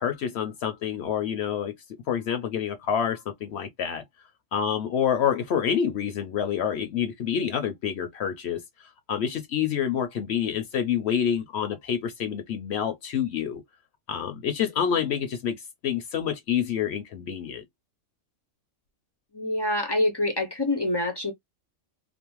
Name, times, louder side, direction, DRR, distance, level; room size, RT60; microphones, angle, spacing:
voice 1, 0.0-1.7 2.1-4.0 4.5-13.6 14.1-15.6 15.8-17.7, left 8 dB, 65° left, 0.7 m, -27 dB
voice 2, 19.3-21.3, left 1 dB, 40° left, 0.3 m, -26 dB
2.5 x 2.0 x 2.9 m
omnidirectional pair, 1.3 m